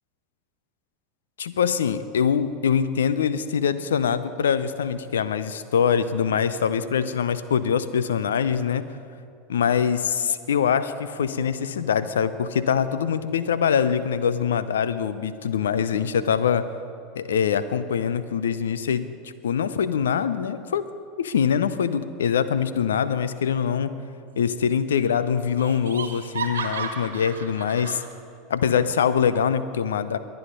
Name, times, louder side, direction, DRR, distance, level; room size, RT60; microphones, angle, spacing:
voice 1, 1.4-8.8 9.5-16.7 17.2-19.1 19.4-20.9 21.2-23.9 24.4-28.0 28.5-30.2, left 7 dB, 75° left, 14 dB, 0.6 m, -23 dB
Laughter, 24.3-24.8 25.1-25.2 25.6-28.1, right 5 dB, 75° right, 1.4 m, -34 dB
22.0 x 9.3 x 5.3 m, 2.4 s
figure-of-eight pair, 80°, 0 cm